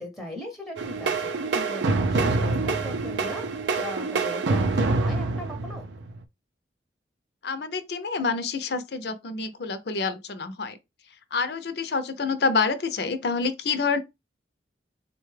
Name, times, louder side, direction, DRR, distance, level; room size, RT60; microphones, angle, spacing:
voice 1, 0.0-3.5 3.7-5.9, left 1 dB, ahead, 0.7 m, -38 dB
sound 1, 0.8-6.2, right 3 dB, 80° right, 0.5 m, -26 dB
voice 2, 7.4-10.8 11.3-14.0, left 4 dB, 65° left, 0.5 m, -27 dB
4.0 x 2.2 x 3.2 m
head